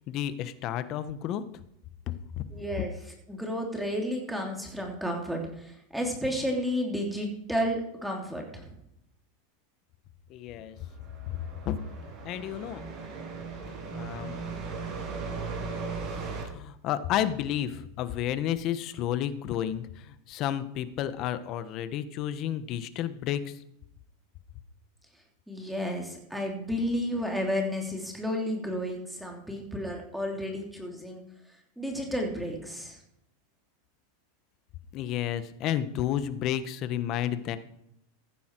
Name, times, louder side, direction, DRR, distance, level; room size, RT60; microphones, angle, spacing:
voice 1, 0.1-1.4 2.3-2.4 10.3-10.8 11.6-11.8 12.2-12.9 13.9-14.4 16.4-23.6 34.9-37.6, left 11 dB, 45° left, 12 dB, 1.2 m, -31 dB
voice 2, 2.5-2.9 3.3-8.7 25.5-31.2 31.8-33.0, equal, ahead, 1 dB, 3.0 m, -32 dB
sound 1, 10.8-16.4, right 4 dB, 45° right, 6.9 m, -37 dB
15.0 x 10.5 x 4.6 m, 0.76 s
supercardioid pair, 120°, 0 cm